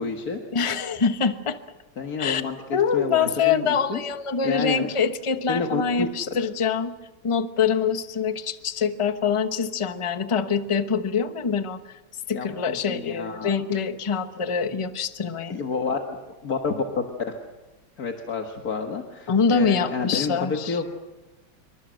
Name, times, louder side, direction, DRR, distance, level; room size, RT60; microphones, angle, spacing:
voice 1, 0.0-0.4 2.0-4.0 4.4-4.9 5.5-6.1 12.3-13.5 15.5-16.2 16.4-17.0 18.0-20.8, left 5 dB, 50° left, 3 dB, 2.0 m, -29 dB
voice 2, 0.5-1.6 2.2-2.4 2.7-6.9 7.2-11.9 12.3-15.6 19.3-20.8, left 6 dB, 20° left, 9 dB, 0.8 m, -24 dB
27.5 x 24.0 x 6.4 m, 1.2 s
omnidirectional pair, 2.1 m